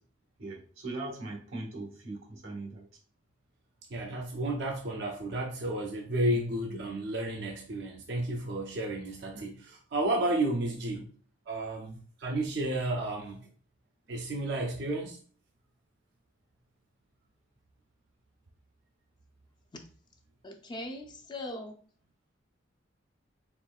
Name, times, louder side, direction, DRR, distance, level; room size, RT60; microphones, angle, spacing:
voice 1, 0.4-2.9 6.3-6.4 9.3-9.5 10.9-11.1, right 2 dB, 90° right, 1 dB, 1.2 m, -40 dB
voice 2, 3.9-11.1 11.5-13.5 14.1-15.2, right 1 dB, 55° right, 0 dB, 0.5 m, -32 dB
voice 3, 20.4-21.8, left 1 dB, 20° left, 4 dB, 0.4 m, -40 dB
4.4 x 3.1 x 2.3 m, 0.42 s
head